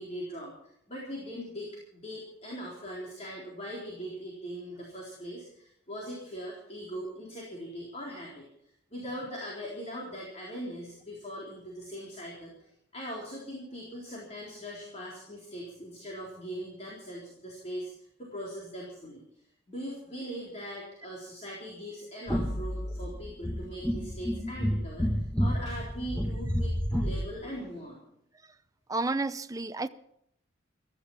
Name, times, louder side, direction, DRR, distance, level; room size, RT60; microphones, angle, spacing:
voice 1, 0.0-8.4 8.9-12.7 12.9-17.9 18.2-19.2 19.7-28.0, equal, 35° left, 4.1 m, -40 dB
sound 1, 22.3-27.3, equal, 5° left, 1.3 m, -30 dB
voice 2, 28.9-29.9, right 3 dB, 15° right, 0.6 m, -31 dB
16.0 x 14.0 x 5.6 m
head